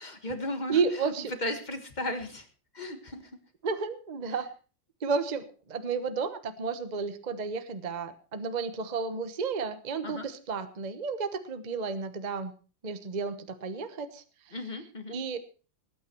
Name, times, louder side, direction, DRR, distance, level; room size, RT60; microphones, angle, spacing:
voice 1, 0.0-1.1 1.4-2.5 2.7-3.4 10.0-10.2 14.5-15.2, left 1 dB, 25° left, 7 dB, 1.7 m, -36 dB
voice 2, 0.7-1.3 3.6-4.5 5.0-12.5 12.8-14.2 15.1-15.4, right 5 dB, 30° right, 10 dB, 1.0 m, -32 dB
19.5 x 9.4 x 4.5 m, 0.37 s
omnidirectional pair, 2.0 m